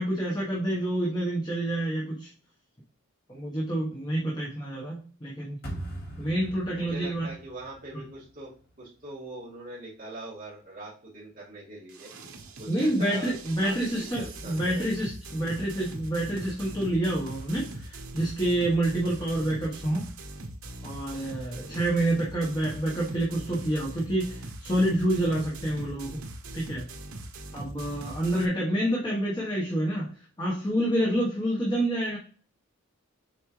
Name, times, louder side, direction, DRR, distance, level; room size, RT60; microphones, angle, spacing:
voice 1, 0.0-2.3 3.3-5.6 6.2-7.3 7.9-8.0 12.7-20.1 20.8-26.2 26.5-26.8 27.5-30.1 30.4-32.2, right 1 dB, 20° left, -4 dB, 1.3 m, -28 dB
sound 1, 5.6-8.7, right 1 dB, 45° left, 2.6 m, -41 dB
voice 2, 6.7-8.5 8.8-12.1 12.6-13.3 13.6-14.9 15.8-15.9 21.6-21.9, right 2 dB, 40° right, -8 dB, 2.4 m, -42 dB
sound 2, 11.9-28.5, right 1 dB, 75° right, 1.0 m, -41 dB
7.2 x 4.4 x 3.3 m, 0.43 s
head